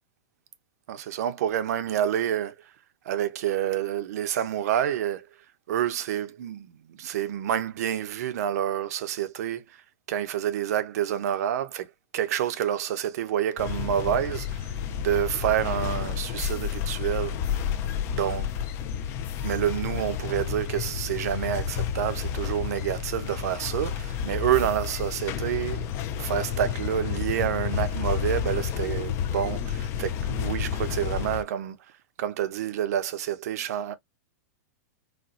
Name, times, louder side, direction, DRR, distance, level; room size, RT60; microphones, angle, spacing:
voice 1, 0.9-2.7 3.0-5.3 5.7-9.8 10.1-11.9 12.1-17.4 18.1-18.5 19.4-25.9 26.2-31.8 32.2-34.0, right 10 dB, 65° right, 0.7 m, -28 dB
sound 1, 13.6-31.4, left 8 dB, 30° left, 0.4 m, -30 dB
4.2 x 2.2 x 2.4 m
supercardioid pair, 150°, 9 cm